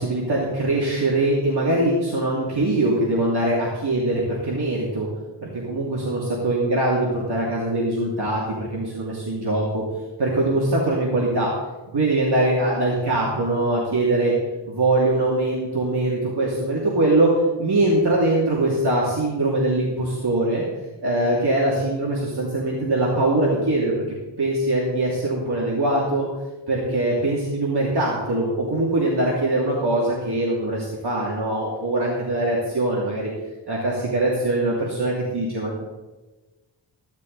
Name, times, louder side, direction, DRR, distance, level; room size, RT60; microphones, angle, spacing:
voice 1, 0.0-5.1 5.4-9.8 10.2-11.5 11.9-14.3 14.7-17.3 17.6-20.7 21.0-23.9 24.4-26.3 26.7-33.3 33.7-35.8, right 2 dB, 55° right, -5 dB, 2.7 m, -22 dB
15.0 x 12.0 x 4.0 m, 1.2 s
wide cardioid pair, 125°, 46 cm